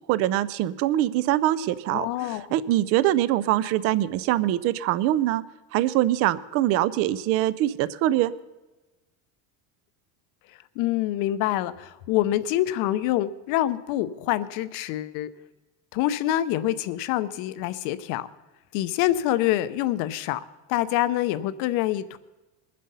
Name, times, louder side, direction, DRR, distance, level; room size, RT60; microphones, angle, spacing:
voice 1, 0.1-5.4 5.7-8.3, right 14 dB, 40° right, 17 dB, 0.4 m, -23 dB
voice 2, 1.9-2.5 10.8-15.3 15.9-18.3 18.7-20.4 20.7-22.2, left 14 dB, 50° left, 14 dB, 0.7 m, -26 dB
21.5 x 7.5 x 5.5 m, 1.1 s
cardioid pair, 175°, 39 cm